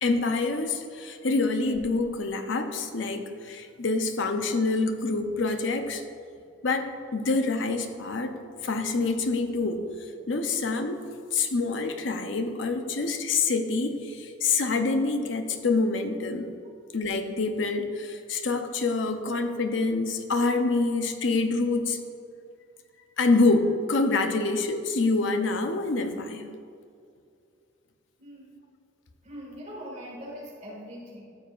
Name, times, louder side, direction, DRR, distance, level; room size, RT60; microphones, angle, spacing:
voice 1, 0.0-6.0 6.6-8.3 8.6-9.8 10.3-11.0 11.3-16.5 16.9-22.0 23.2-26.5, left 3 dB, 75° left, 6 dB, 0.7 m, -26 dB
voice 2, 28.2-28.5 29.2-31.2, equal, 35° right, -3 dB, 2.0 m, -41 dB
12.5 x 7.2 x 2.5 m, 2.4 s
head